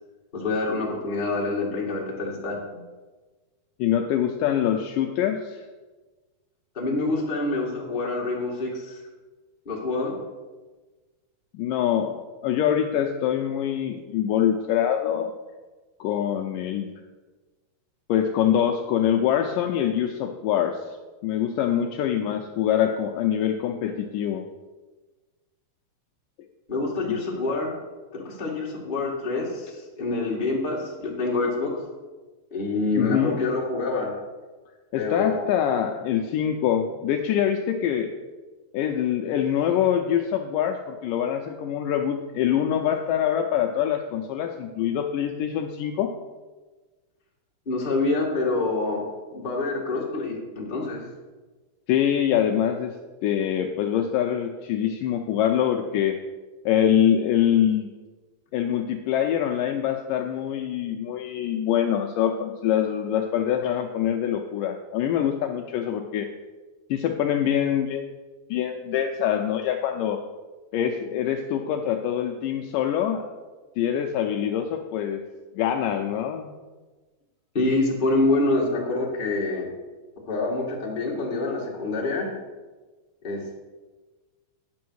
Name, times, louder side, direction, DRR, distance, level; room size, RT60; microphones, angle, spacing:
voice 1, 0.3-2.8 6.7-9.0 9.6-10.1 26.7-27.7 28.1-31.7 32.5-34.1 35.0-35.5 47.6-49.0 49.3-51.1 77.5-79.7 80.3-82.3 83.2-83.6, left 2 dB, 20° left, -3 dB, 1.2 m, -26 dB
voice 2, 3.8-5.7 11.5-15.3 16.0-16.9 18.1-20.9 21.2-24.4 33.0-33.4 34.9-38.1 38.7-46.1 51.9-52.9 53.2-56.2 56.7-57.9 58.5-66.3 66.9-68.1 68.5-70.2 70.7-73.2 73.8-75.2 75.6-76.6, left 9 dB, 80° left, 4 dB, 2.0 m, -24 dB
9.4 x 6.9 x 6.2 m, 1.3 s
omnidirectional pair, 4.3 m